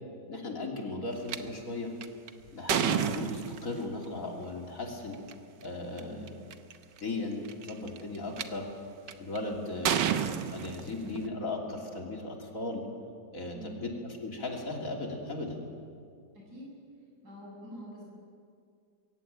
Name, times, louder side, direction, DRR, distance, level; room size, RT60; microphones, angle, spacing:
voice 1, 0.3-1.9 2.5-5.2 5.6-6.3 7.0-8.7 9.2-10.2 10.5-12.8 13.3-13.9 14.2-15.6, left 2 dB, 50° left, 0 dB, 3.3 m, -37 dB
sound 1, 1.3-1.4 2.0-3.9 5.1-5.3 6.0-6.1 6.3-6.7 7.5-8.4 9.1-9.4 9.9-11.3, right 8 dB, 85° right, 1.6 m, -30 dB
voice 2, 6.0-6.3 13.5-13.8 16.5-16.7 17.2-18.0, equal, 60° right, -3 dB, 8.6 m, -45 dB
22.5 x 16.5 x 8.9 m, 2.3 s
omnidirectional pair, 1.9 m